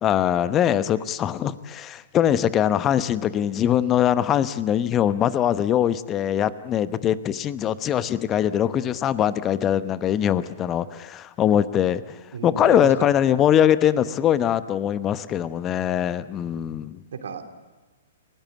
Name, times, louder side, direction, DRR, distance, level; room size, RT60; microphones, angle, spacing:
voice 1, 0.0-12.2 12.4-17.0, left 10 dB, 25° left, 14 dB, 1.0 m, -22 dB
voice 2, 12.3-13.1 17.1-17.4, right 5 dB, 65° right, 6 dB, 3.0 m, -32 dB
30.0 x 18.0 x 8.6 m, 1.3 s
figure-of-eight pair, 115°, 0 cm